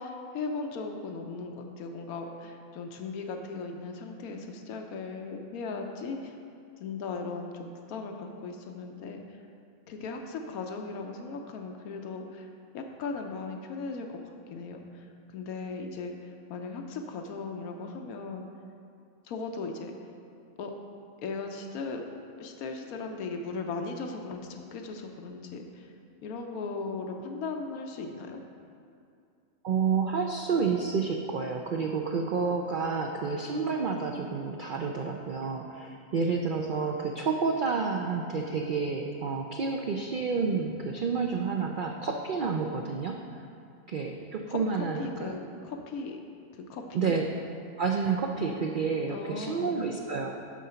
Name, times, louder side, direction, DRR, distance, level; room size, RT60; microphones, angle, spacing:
voice 1, 0.0-6.3 6.8-9.4 9.9-18.5 19.2-19.9 20.6-20.7 21.2-22.0 22.4-25.9 26.2-28.4 44.5-46.2 46.5-47.1 49.1-49.8, left 4 dB, 85° left, 4 dB, 1.2 m, -38 dB
voice 2, 29.6-43.4 43.9-45.3 46.9-47.3 47.8-50.4, right 5 dB, 90° right, 2 dB, 0.4 m, -30 dB
11.5 x 3.9 x 5.6 m, 2.4 s
omnidirectional pair, 1.5 m